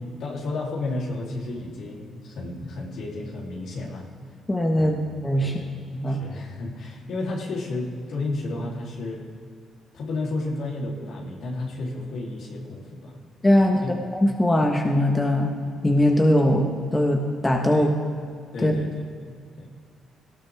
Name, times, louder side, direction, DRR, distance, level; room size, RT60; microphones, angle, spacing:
voice 1, 0.0-4.1 4.8-5.0 5.4-5.7 6.1-9.3 9.9-13.2 13.6-13.9 17.7-17.9 18.5-19.7, left 2 dB, 70° left, -3 dB, 3.2 m, -32 dB
voice 2, 4.5-5.0 5.2-5.5 5.9-6.2 13.4-13.8 14.2-15.5 15.8-17.9 18.6-18.7, left 1 dB, 20° left, 1 dB, 1.3 m, -20 dB
18.5 x 14.0 x 3.6 m, 2.2 s
cardioid pair, 90°, 0 cm